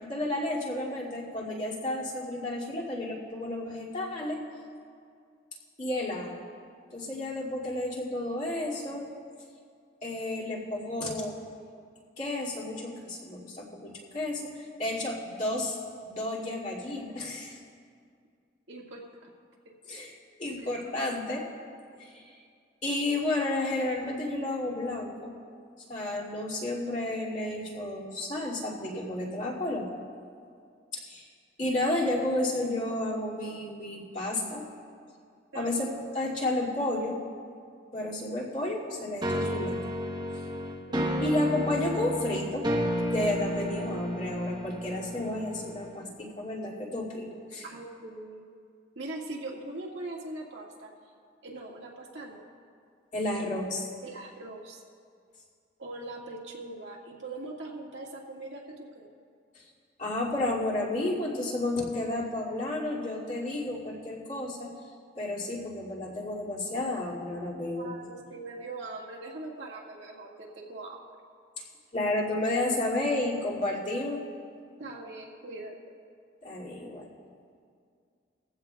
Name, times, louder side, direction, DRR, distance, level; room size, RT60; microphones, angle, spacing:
voice 1, 0.0-4.4 5.8-6.5 6.9-9.1 10.0-11.3 12.2-15.8 16.0-17.6 19.9-20.1 20.4-21.4 22.0-22.3 22.8-25.3 25.9-29.9 30.9-31.3 31.6-34.6 35.5-37.2 37.9-39.8 41.2-42.7 43.1-47.6 53.1-53.9 59.5-59.6 60.0-64.7 65.2-67.9 71.9-74.2 76.4-77.1, left 1 dB, 40° left, -6 dB, 2.4 m, -31 dB
voice 2, 18.7-19.3 19.9-20.0 20.4-20.9 35.5-35.8 40.9-41.4 47.6-48.4 49.0-50.9 51.4-52.5 54.0-54.8 55.8-59.1 67.8-71.0 74.8-75.8, right 2 dB, 75° right, -3 dB, 1.8 m, -41 dB
sound 1, 39.2-46.1, equal, 20° right, 0.9 m, -32 dB
20.0 x 15.5 x 2.3 m, 2.2 s
head